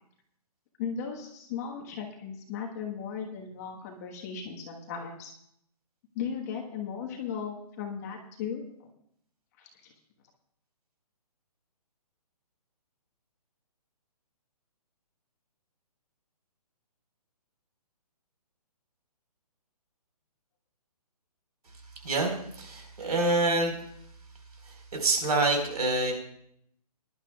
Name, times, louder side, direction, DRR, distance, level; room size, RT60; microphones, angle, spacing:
voice 1, 0.8-5.3 6.1-8.9 9.6-9.9, left 7 dB, 25° left, 1 dB, 1.3 m, -37 dB
voice 2, 22.0-23.8 24.6-26.1, right 2 dB, 75° right, 3 dB, 4.3 m, -27 dB
21.5 x 11.5 x 2.3 m, 0.70 s
hypercardioid pair, 165°, 20 cm